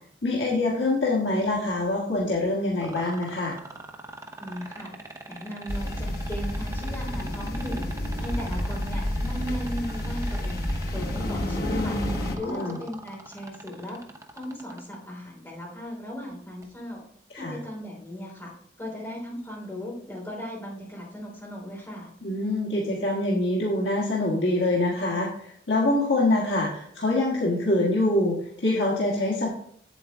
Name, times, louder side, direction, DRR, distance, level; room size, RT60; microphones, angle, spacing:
voice 1, 0.2-3.6 12.4-12.8 17.3-17.5 22.2-29.5, left 2 dB, 70° left, -4 dB, 1.6 m, -25 dB
sound 1, 2.8-15.0 16.6-16.7, right 2 dB, 15° right, 0.8 m, -41 dB
voice 2, 4.4-4.9 5.3-7.9 8.2-12.0 12.4-14.0 14.3-17.0 17.4-18.5 18.8-22.1, equal, 15° left, -4 dB, 3.5 m, -37 dB
sound 2, 5.7-12.4, left 1 dB, 50° left, 1.2 m, -29 dB
8.1 x 8.0 x 3.5 m, 0.64 s
head